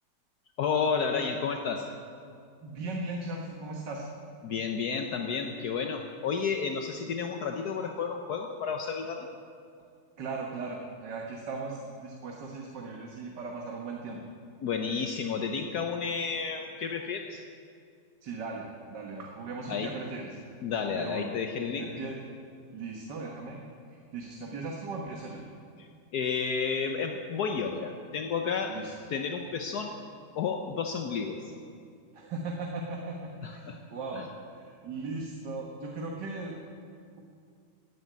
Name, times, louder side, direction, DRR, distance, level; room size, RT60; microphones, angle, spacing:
voice 1, 0.6-1.9 4.4-9.3 14.6-17.4 19.7-19.9 20.6-21.9 25.8-28.8 29.1-29.9 30.3-31.5 33.4-33.8 34.1-34.3, left 6 dB, 65° left, 4 dB, 1.4 m, -31 dB
voice 2, 2.6-4.1 10.2-14.2 18.2-20.4 20.9-21.3 21.8-22.2 22.7-23.6 24.1-25.4 28.7-28.9 32.1-34.2 34.5-36.6, right 3 dB, 80° right, 0 dB, 2.1 m, -38 dB
15.5 x 9.9 x 9.4 m, 2.4 s
omnidirectional pair, 1.8 m